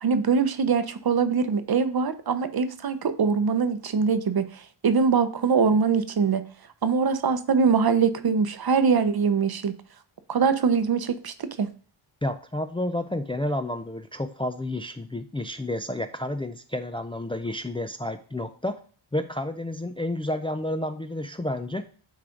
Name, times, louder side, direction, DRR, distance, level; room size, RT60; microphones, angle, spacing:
voice 1, 0.0-6.4 6.8-9.7 10.3-11.7, right 5 dB, 50° right, 11 dB, 0.8 m, -23 dB
voice 2, 12.2-18.7 19.1-21.8, left 1 dB, 10° left, 8 dB, 0.4 m, -30 dB
9.4 x 3.3 x 3.8 m, 0.41 s
cardioid pair, 70°, 49 cm